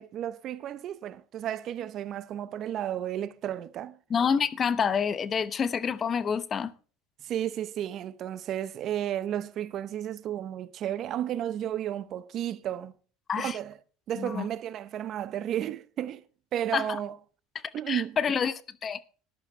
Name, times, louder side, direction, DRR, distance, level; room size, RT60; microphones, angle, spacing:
voice 1, 0.0-4.0 7.2-12.9 13.4-13.8 14.1-16.2 16.5-17.2 17.7-18.2, right 11 dB, 50° right, 0.8 m, -33 dB
voice 2, 4.1-6.7 13.3-13.6 14.2-14.5 16.7-17.0 17.9-19.0, left 6 dB, 35° left, 0.8 m, -28 dB
13.5 x 11.0 x 3.3 m
supercardioid pair, 105°, 0 cm